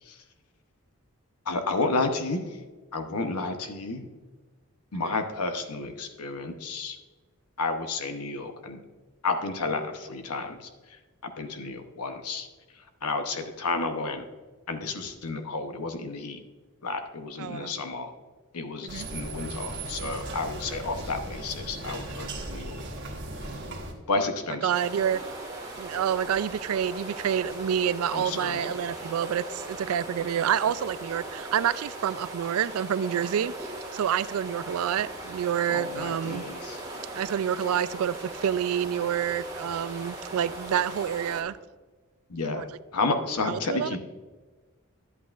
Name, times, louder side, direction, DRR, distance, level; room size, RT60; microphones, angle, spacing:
voice 1, 1.4-2.6 2.9-4.0 4.9-7.0 7.6-8.8 9.2-12.5 12.7-14.2 14.7-16.4 16.8-18.1 18.5-22.9 24.1-24.7 28.1-28.7 35.7-36.8 42.3-44.0, left 3 dB, 85° left, 6 dB, 0.9 m, -31 dB
voice 2, 17.4-17.7 18.8-19.1 24.6-25.2 25.8-36.5 37.1-41.6 42.6-42.7 43.5-43.9, right 9 dB, 70° right, 17 dB, 0.3 m, -28 dB
sound 1, 18.9-23.9, right 2 dB, 50° right, 1.3 m, -37 dB
sound 2, 24.7-41.4, right 2 dB, 15° right, 1.4 m, -39 dB
11.0 x 8.3 x 2.5 m, 1.3 s
head